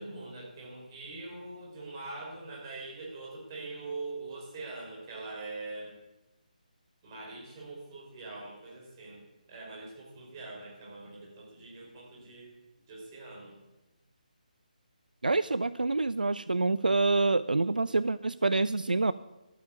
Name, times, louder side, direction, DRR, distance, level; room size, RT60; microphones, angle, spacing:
voice 1, 0.0-5.9 7.0-9.2 9.5-12.5 12.9-13.5, right 3 dB, 25° right, -3 dB, 4.8 m, -43 dB
voice 2, 15.2-19.1, right 3 dB, 75° right, 16 dB, 0.4 m, -27 dB
12.0 x 8.6 x 8.7 m, 1.0 s
figure-of-eight pair, 150°, 5 cm